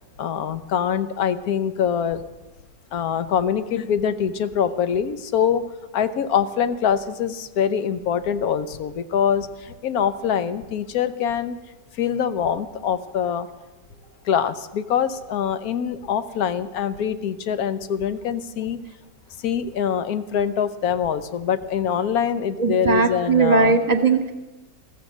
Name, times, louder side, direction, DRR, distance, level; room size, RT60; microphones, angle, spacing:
voice 1, 0.2-2.2 2.9-5.6 5.9-11.6 12.0-13.5 14.2-18.8 19.4-23.7, left 8 dB, 70° left, 12 dB, 1.3 m, -24 dB
voice 2, 22.6-24.3, right 4 dB, 30° right, 6 dB, 1.2 m, -19 dB
15.0 x 14.5 x 6.2 m, 1.1 s
omnidirectional pair, 1.7 m